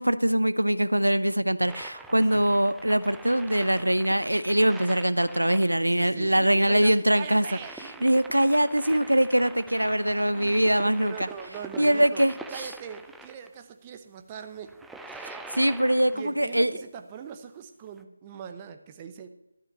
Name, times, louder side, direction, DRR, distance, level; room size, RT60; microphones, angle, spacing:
voice 1, 0.0-7.4 8.0-11.3 11.8-12.3 15.5-16.7, right 1 dB, 85° right, 15 dB, 0.7 m, -23 dB
sound 1, 1.7-13.5 14.6-16.4 18.0-18.1, right 3 dB, 5° right, 0.4 m, -45 dB
voice 2, 5.8-8.1 10.3-10.5 11.0-12.2 12.5-14.7 16.1-19.3, right 7 dB, 20° right, 7 dB, 0.8 m, -41 dB
13.0 x 5.8 x 8.0 m, 0.87 s
figure-of-eight pair, 160°, 0 cm